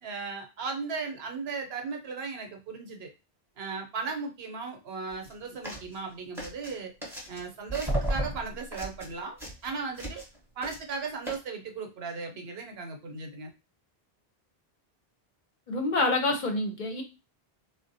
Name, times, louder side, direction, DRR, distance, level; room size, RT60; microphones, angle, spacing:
voice 1, 0.0-3.1 3.6-6.9 7.3-9.4 9.6-10.2 10.6-13.5, right 4 dB, 75° right, 3 dB, 0.9 m, -36 dB
sound 1, 5.1-5.3 5.6-6.0 6.4-7.4 7.7-10.4 10.6-10.9 11.3-11.4, right 1 dB, 5° right, 0.8 m, -34 dB
voice 2, 15.7-17.0, left 2 dB, 55° left, 3 dB, 0.6 m, -27 dB
3.5 x 2.1 x 2.6 m, 0.28 s
omnidirectional pair, 1.1 m